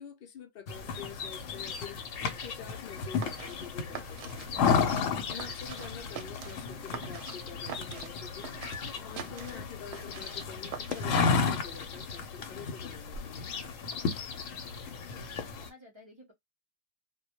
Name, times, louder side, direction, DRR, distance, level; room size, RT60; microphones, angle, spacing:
voice 1, 0.0-4.9 5.3-8.5 8.9-13.5, left 7 dB, 60° left, 0.6 m, -47 dB
sound 1, 0.7-15.7, left 5 dB, 80° left, 1.0 m, -33 dB
sound 2, 3.0-11.4, right 8 dB, 70° right, 0.8 m, -45 dB
voice 2, 14.6-16.3, left 1 dB, 35° right, 0.5 m, -56 dB
2.2 x 2.1 x 2.8 m
omnidirectional pair, 1.3 m